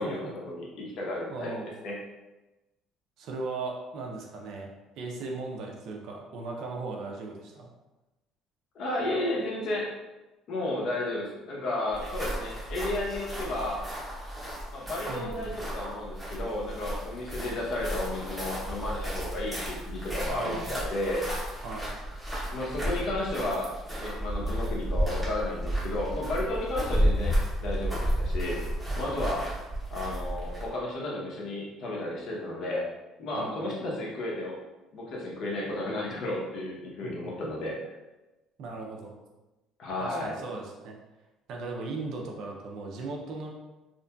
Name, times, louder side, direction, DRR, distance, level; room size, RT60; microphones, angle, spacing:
voice 1, 0.0-2.0 8.7-9.9 10.5-13.9 14.7-21.3 22.5-23.7 24.0-27.3 27.6-28.6 29.0-29.5 29.9-32.9 33.2-34.6 34.9-37.8 39.8-40.4, left 1 dB, 50° left, -3 dB, 0.7 m, -33 dB
voice 2, 1.3-1.7 3.2-4.7 5.0-7.7 15.1-15.6 20.3-20.8 21.6-21.9 33.3-33.7 37.0-37.1 38.6-39.1 40.0-40.9 41.5-43.5, right 3 dB, 55° right, 0 dB, 0.5 m, -37 dB
sound 1, 11.9-30.8, equal, ahead, 0.8 m, -32 dB
2.8 x 2.6 x 2.2 m, 1.1 s
cardioid pair, 165°, 0 cm